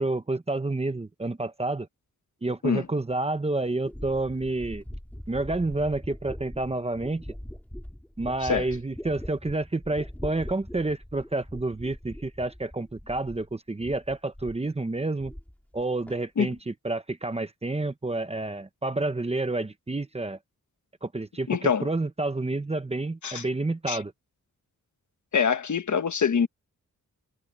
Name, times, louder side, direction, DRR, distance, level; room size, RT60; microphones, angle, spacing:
voice 1, 0.0-1.9 2.4-4.8 5.3-7.2 8.2-15.3 15.7-20.4 21.0-24.1, right 2 dB, 20° right, 0.9 m, -29 dB
sound 1, 3.8-13.5 13.8-14.7 15.0-15.8 16.1-16.6, equal, 5° left, 3.4 m, -42 dB
voice 2, 21.5-21.9 23.2-23.4 23.9-24.0 25.3-26.5, left 6 dB, 60° left, 1.4 m, -25 dB
wide cardioid pair, 165°, 32 cm